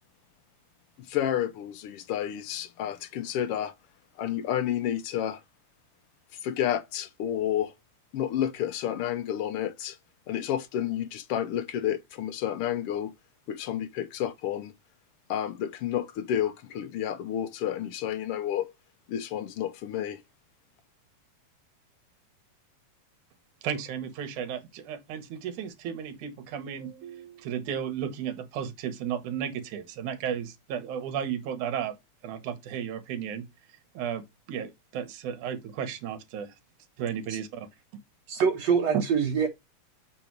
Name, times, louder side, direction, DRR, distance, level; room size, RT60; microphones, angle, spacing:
voice 1, 1.0-3.7 4.2-5.4 6.4-7.7 8.1-10.0 10.3-13.1 13.5-14.7 15.3-18.7 19.1-20.2, left 10 dB, 90° left, 1.2 m, -30 dB
voice 2, 23.6-32.0 32.2-33.5 33.9-34.2 34.5-36.5 37.0-37.7, right 8 dB, 75° right, 2.6 m, -34 dB
voice 3, 38.3-39.5, right 6 dB, 60° right, 2.5 m, -24 dB
7.8 x 4.0 x 4.5 m
omnidirectional pair, 3.5 m